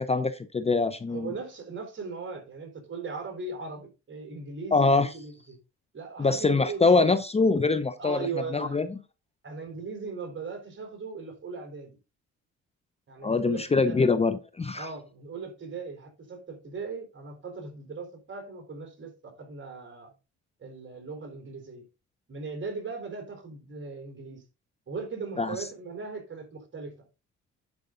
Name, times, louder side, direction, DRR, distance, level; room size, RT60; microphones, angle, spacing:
voice 1, 0.0-1.3 4.7-5.1 6.2-8.9 13.2-14.9 25.4-25.6, left 3 dB, 20° left, 0.6 m, -24 dB
voice 2, 1.1-5.6 5.9-7.1 8.0-8.9 9.4-12.0 13.1-14.1 14.7-20.1 20.6-21.9 22.3-24.4 24.9-26.9, right 4 dB, 40° right, 3.8 m, -38 dB
10.5 x 5.2 x 3.9 m
cardioid pair, 90°, 30 cm